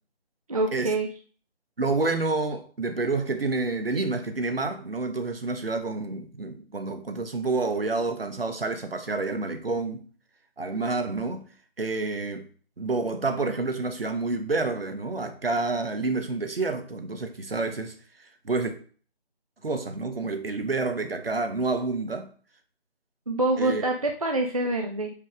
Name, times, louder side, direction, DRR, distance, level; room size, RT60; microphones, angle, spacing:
voice 1, 0.5-1.1 23.3-25.1, right 2 dB, 35° right, 0.6 m, -26 dB
voice 2, 1.8-10.1 10.6-11.5 11.8-12.5 12.8-18.7 19.6-22.3 23.6-23.9, right 3 dB, 65° right, 1.1 m, -29 dB
5.4 x 5.0 x 4.9 m
figure-of-eight pair, 155°, 32 cm